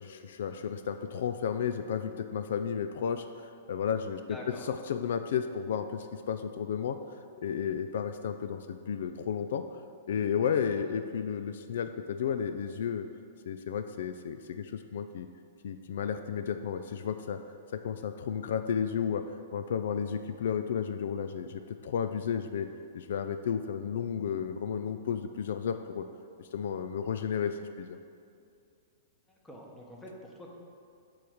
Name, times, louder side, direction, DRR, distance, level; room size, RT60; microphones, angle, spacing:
voice 1, 0.0-7.0 7.4-9.6 10.1-13.1 13.5-15.3 15.6-17.4 17.7-19.2 19.5-22.7 22.9-26.1 26.4-28.0, left 7 dB, 70° left, 9 dB, 0.3 m, -33 dB
voice 2, 4.3-4.6 10.9-11.0 29.3-30.5, equal, 5° left, -2 dB, 1.0 m, -46 dB
8.3 x 3.1 x 6.4 m, 2.4 s
hypercardioid pair, 150°, 0 cm